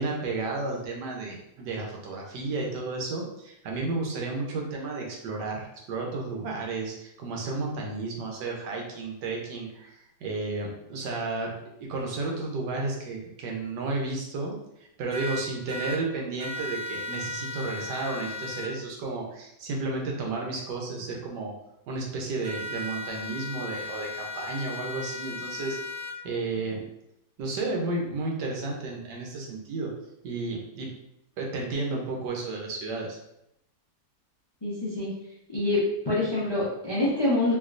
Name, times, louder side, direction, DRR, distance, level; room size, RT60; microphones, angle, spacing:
voice 1, 0.0-9.9 10.2-21.5 21.9-25.8 26.2-26.8 27.4-29.9 30.2-30.9 31.4-33.2, right 3 dB, 90° right, -1 dB, 1.4 m, -32 dB
sound 1, 15.1-16.0 16.4-18.7 22.4-26.1, left 2 dB, 15° right, 1.0 m, -36 dB
voice 2, 34.6-35.1 35.5-37.5, left 2 dB, 35° left, -8 dB, 0.4 m, -26 dB
3.3 x 2.8 x 2.5 m, 0.80 s
omnidirectional pair, 1.8 m